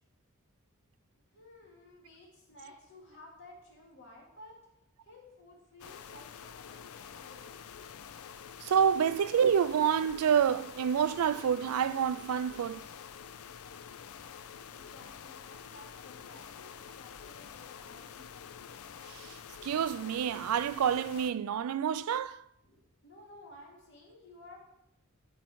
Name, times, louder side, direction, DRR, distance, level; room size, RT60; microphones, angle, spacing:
voice 1, 1.3-4.6 5.0-7.6 14.7-18.6 22.6-24.6, left 1 dB, 50° left, 2.6 m, -54 dB
sound 1, 5.8-21.3, left 7 dB, 80° left, 0.5 m, -48 dB
voice 2, 8.6-12.8 19.1-19.3 19.6-22.4, right 8 dB, 85° right, 0.3 m, -28 dB
13.0 x 4.5 x 4.6 m
head